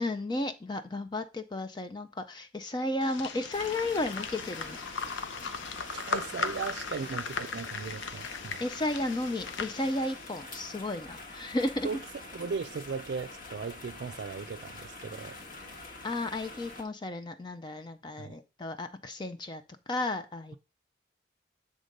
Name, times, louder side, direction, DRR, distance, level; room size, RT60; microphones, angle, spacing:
voice 1, 0.0-4.8 8.6-11.9 16.0-20.5, left 2 dB, 25° left, 0.4 m, -33 dB
sound 1, 3.0-10.3, left 5 dB, 80° left, 0.7 m, -38 dB
sound 2, 3.5-16.8, left 2 dB, 45° left, 1.3 m, -45 dB
voice 2, 5.9-8.6 11.8-12.0 12.3-15.4 18.2-18.4, right 5 dB, 60° right, 0.4 m, -37 dB
7.8 x 3.6 x 5.2 m
head